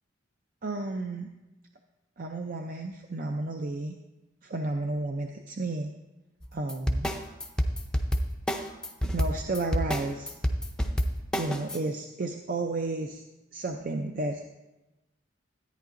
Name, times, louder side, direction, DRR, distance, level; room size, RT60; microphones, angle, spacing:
voice 1, 0.6-1.3 2.2-3.9 4.4-5.9 6.5-7.1 9.0-10.3 11.4-13.2 13.5-14.4, right 2 dB, 45° right, 4 dB, 0.5 m, -32 dB
sound 1, 6.4-11.8, equal, 5° left, 0.5 m, -27 dB
13.5 x 9.2 x 2.5 m, 1.0 s
head